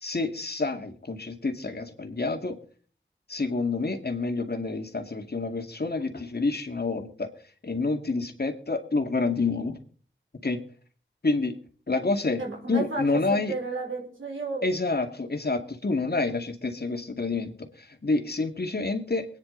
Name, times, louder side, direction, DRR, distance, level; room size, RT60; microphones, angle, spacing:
voice 1, 0.0-2.6 3.3-7.3 7.6-9.8 10.4-10.6 11.2-11.6 11.9-12.4 12.7-13.5 14.6-19.3, left 3 dB, 55° left, 5 dB, 2.2 m, -28 dB
voice 2, 12.4-14.7, right 3 dB, 85° right, -1 dB, 4.5 m, -33 dB
23.0 x 9.8 x 4.0 m, 0.43 s
cardioid pair, 45°, 20 cm